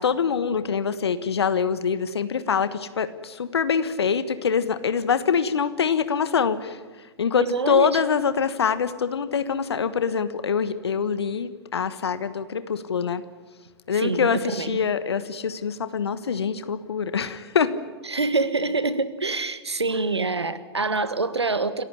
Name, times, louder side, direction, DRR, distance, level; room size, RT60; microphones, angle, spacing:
voice 1, 0.0-13.2 13.9-17.7, left 6 dB, 75° left, 13 dB, 1.3 m, -24 dB
voice 2, 7.4-8.0 13.9-14.8 18.1-21.8, right 3 dB, 90° right, 14 dB, 1.6 m, -26 dB
28.5 x 15.0 x 9.9 m, 1.4 s
figure-of-eight pair, 105°, 14 cm